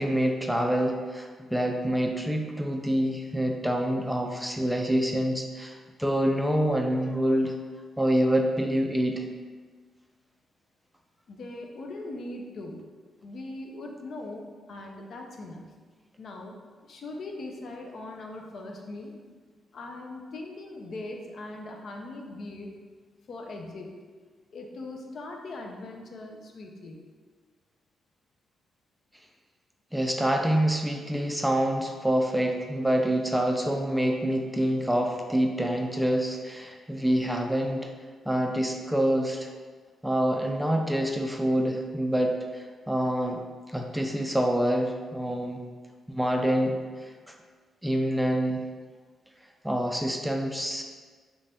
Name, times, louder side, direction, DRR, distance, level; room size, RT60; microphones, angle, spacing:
voice 1, 0.0-7.6 8.0-9.3 29.9-37.9 38.3-39.5 40.0-45.7 46.1-47.3 47.8-48.7 49.6-50.8, equal, 5° right, 3 dB, 0.3 m, -26 dB
voice 2, 11.3-12.9 13.2-15.7 16.2-16.6 16.8-19.2 19.7-22.7 23.2-23.9 24.5-27.0, left 2 dB, 60° left, 2 dB, 0.5 m, -40 dB
3.3 x 2.6 x 3.4 m, 1.5 s
cardioid pair, 75°, 0 cm